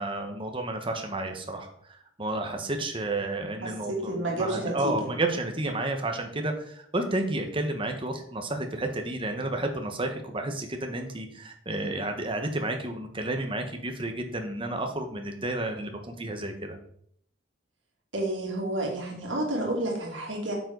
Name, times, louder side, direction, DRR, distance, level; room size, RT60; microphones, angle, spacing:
voice 1, 0.0-16.8, right 2 dB, 25° right, 5 dB, 1.4 m, -31 dB
voice 2, 3.6-5.0 18.1-20.6, right 1 dB, 65° right, -1 dB, 2.7 m, -30 dB
9.1 x 7.7 x 4.0 m, 0.64 s
head